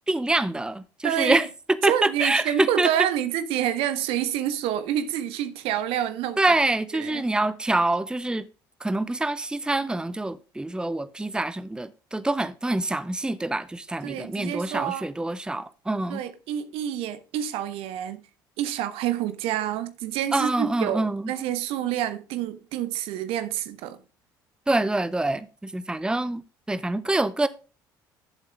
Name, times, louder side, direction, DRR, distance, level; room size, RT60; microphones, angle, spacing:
voice 1, 0.1-1.5 1.8-2.9 6.4-8.5 8.8-16.2 20.3-21.3 24.7-26.4 26.7-27.5, right 2 dB, 10° right, 0.7 m, -25 dB
voice 2, 1.0-1.4 1.8-6.4 6.9-7.2 14.0-15.0 16.1-18.2 18.6-24.0, right 11 dB, 60° right, 1.2 m, -28 dB
11.5 x 7.6 x 3.5 m
figure-of-eight pair, 55°, 11 cm